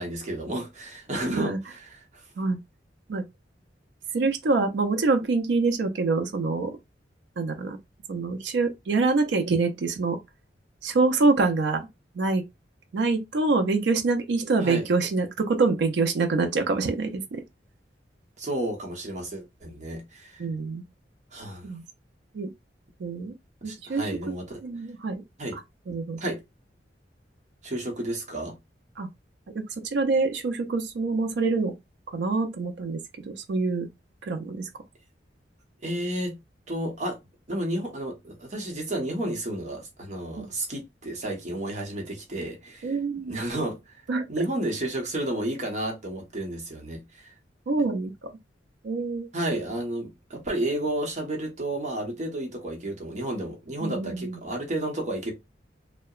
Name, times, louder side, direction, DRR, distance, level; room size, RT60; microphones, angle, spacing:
voice 1, 0.0-1.5 2.1-2.2 14.6-14.8 18.4-20.4 21.3-21.7 23.6-24.6 25.4-25.6 26.2-26.4 27.6-28.6 35.8-36.4 36.7-37.2 37.5-42.9 43.3-44.0 44.3-47.3 49.3-55.3, right 1 dB, 40° right, 0.9 m, -31 dB
voice 2, 4.1-6.8 7.4-7.8 8.1-10.2 10.8-11.9 12.1-12.4 12.9-17.4 20.4-20.8 21.6-21.8 22.3-22.5 23.0-23.4 23.6-24.1 24.6-25.2 25.5-25.6 25.9-26.2 29.0-29.1 29.5-31.8 32.1-33.9 34.2-34.8 40.3-40.5 42.8-43.4 44.1-44.4 47.7-48.3 48.8-49.3 53.8-54.4, right 3 dB, 75° right, 0.4 m, -26 dB
2.8 x 2.1 x 2.3 m
head